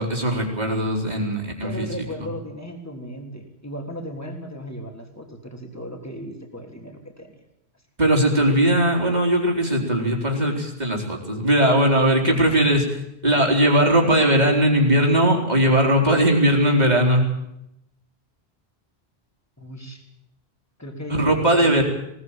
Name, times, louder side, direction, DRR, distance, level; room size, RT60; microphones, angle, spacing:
voice 1, 0.0-2.1 8.0-12.9 13.2-17.2 21.1-21.8, right 1 dB, 40° right, 1 dB, 4.4 m, -19 dB
voice 2, 1.6-7.3 12.3-12.5 19.6-20.0 20.8-21.8, equal, 15° left, 3 dB, 3.6 m, -36 dB
21.0 x 18.5 x 9.0 m, 0.83 s
omnidirectional pair, 1.1 m